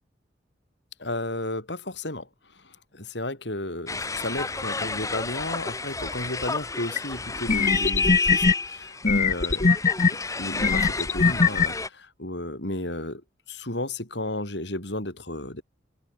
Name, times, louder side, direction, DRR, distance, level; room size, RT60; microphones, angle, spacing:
voice 1, 1.0-2.3 2.5-9.8 10.1-13.2 13.5-15.6, left 1 dB, 65° left, 5.2 m, -33 dB
sound 1, 3.9-11.9, left 3 dB, 15° left, 1.3 m, -30 dB
sound 2, 7.0-7.1 7.5-8.5 9.0-10.1 10.6-11.7, left 4 dB, 40° left, 1.0 m, -20 dB
head